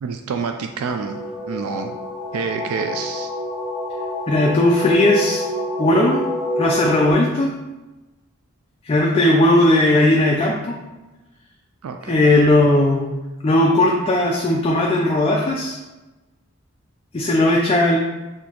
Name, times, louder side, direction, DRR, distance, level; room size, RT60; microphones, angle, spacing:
voice 1, 0.0-2.0 2.3-3.3 11.8-12.3, right 5 dB, 75° right, 5 dB, 0.3 m, -28 dB
sound 1, 0.9-7.1, left 1 dB, 5° left, 1.1 m, -27 dB
voice 2, 4.3-5.4 5.8-6.2 6.6-7.5 8.8-10.8 12.0-13.1 13.4-15.8 17.1-18.0, left 1 dB, 25° left, -1 dB, 0.3 m, -17 dB
6.2 x 2.7 x 2.8 m, 1.1 s
head